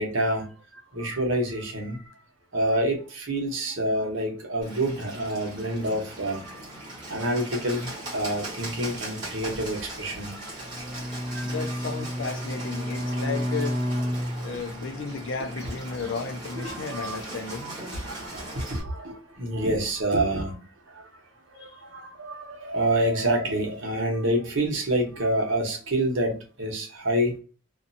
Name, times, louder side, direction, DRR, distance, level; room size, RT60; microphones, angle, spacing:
voice 1, 0.0-2.0 2.5-6.6 7.1-10.9 11.3-11.5 16.6-17.2 17.6-20.6 20.9-21.1 21.5-27.4, right 1 dB, 70° right, 1.0 m, -28 dB
Bird, 4.6-18.8, right 1 dB, 20° right, 1.1 m, -39 dB
Bowed string instrument, 10.6-15.0, equal, 15° left, 0.9 m, -30 dB
voice 2, 11.4-13.8 14.4-17.8 21.6-21.7, left 4 dB, 65° left, 0.5 m, -33 dB
2.5 x 2.3 x 2.6 m
head